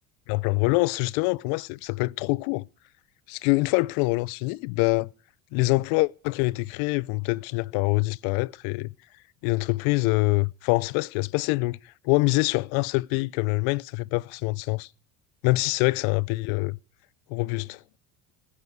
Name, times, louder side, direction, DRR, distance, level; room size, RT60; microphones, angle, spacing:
voice 1, 0.3-2.6 3.3-5.1 5.5-8.9 9.4-11.8 12.0-14.9 15.4-16.8 17.3-17.8, left 25 dB, 70° left, 0.6 m, -25 dB
18.5 x 9.8 x 4.7 m
hypercardioid pair, 70°, 39 cm